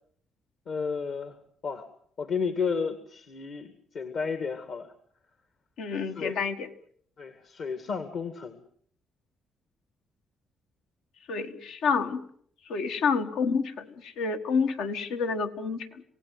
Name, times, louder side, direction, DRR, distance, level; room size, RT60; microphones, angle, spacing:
voice 1, 0.7-1.4 1.6-1.9 2.2-4.9 6.2-6.4 7.2-8.6, left 5 dB, 65° left, 9 dB, 2.0 m, -32 dB
voice 2, 5.8-6.7 11.3-12.3 12.6-16.0, left 5 dB, 90° left, 6 dB, 1.6 m, -29 dB
27.5 x 17.5 x 7.8 m, 0.63 s
cardioid pair, 90°, 0 cm